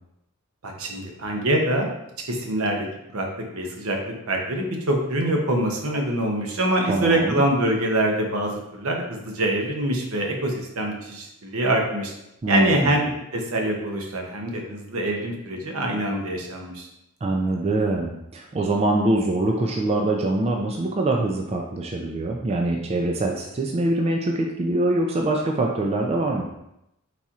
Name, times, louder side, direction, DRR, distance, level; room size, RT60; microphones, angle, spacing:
voice 1, 0.6-1.9 2.3-2.9 3.1-3.3 3.5-12.1 12.5-16.9, right 1 dB, 80° right, 2 dB, 0.8 m, -24 dB
voice 2, 6.9-7.4 12.4-12.9 17.2-26.5, right 2 dB, 30° right, 1 dB, 0.3 m, -24 dB
4.2 x 4.1 x 2.4 m, 0.84 s
head